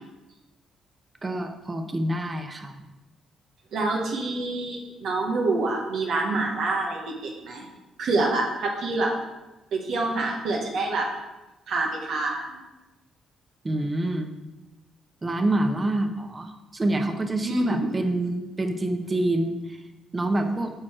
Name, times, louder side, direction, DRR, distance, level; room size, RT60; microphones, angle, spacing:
voice 1, 1.2-2.8 13.6-14.3 15.2-19.8 20.1-20.7, right 1 dB, 25° right, 6 dB, 0.9 m, -27 dB
voice 2, 3.7-7.6 8.0-9.1 9.7-11.1 11.7-12.6 17.4-18.0, right 2 dB, 70° right, -1 dB, 1.2 m, -26 dB
6.6 x 4.7 x 4.4 m, 1.0 s
cardioid pair, 90°, 0 cm